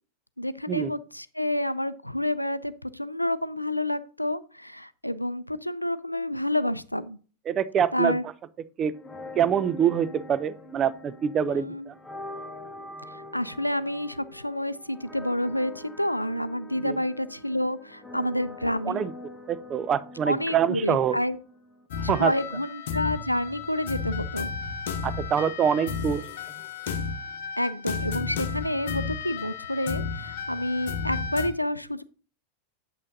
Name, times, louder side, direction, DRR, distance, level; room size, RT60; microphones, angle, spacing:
voice 1, 0.4-7.2 7.9-8.2 11.5-11.9 13.1-19.0 20.3-21.4 22.0-24.5 27.6-32.0, left 1 dB, 90° left, 15 dB, 0.4 m, -29 dB
voice 2, 7.5-8.2 8.8-8.9 9.3-11.9 16.8-17.0 18.9-19.1 19.5-21.2 22.1-22.3 25.0-26.2, right 8 dB, 30° right, 15 dB, 0.5 m, -25 dB
sound 1, 8.9-21.9, left 1 dB, 5° left, 1.0 m, -44 dB
sound 2, 21.9-31.5, left 5 dB, 55° left, 0.9 m, -33 dB
8.5 x 8.5 x 2.6 m, 0.38 s
figure-of-eight pair, 90°, 0 cm